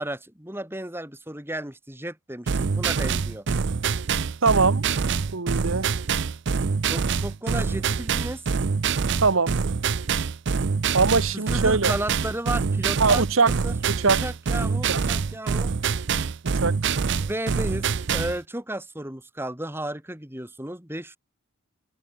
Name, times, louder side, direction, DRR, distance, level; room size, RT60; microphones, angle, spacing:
voice 1, 0.0-3.5 6.9-8.4 11.3-13.7 14.0-15.7 17.2-21.2, right 1 dB, 10° right, 2.4 m, -33 dB
sound 1, 2.5-18.4, right 5 dB, 55° right, 0.5 m, -25 dB
voice 2, 4.4-4.9 5.3-5.9 9.2-9.7 10.9-11.9 13.0-13.5 14.0-14.2 14.9-15.0 16.5-16.8, right 4 dB, 70° right, 1.2 m, -22 dB
head